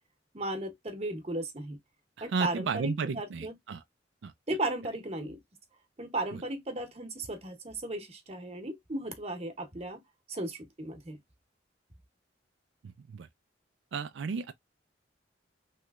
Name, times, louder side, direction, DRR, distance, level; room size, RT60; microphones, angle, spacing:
voice 1, 0.3-1.8 2.2-3.5 4.5-5.4 6.0-10.0 10.3-11.2, right 1 dB, 35° right, 0.9 m, -35 dB
voice 2, 2.2-3.8 4.2-4.3 12.8-13.3 13.9-14.5, right 5 dB, 85° right, 0.4 m, -33 dB
3.1 x 3.0 x 2.3 m
head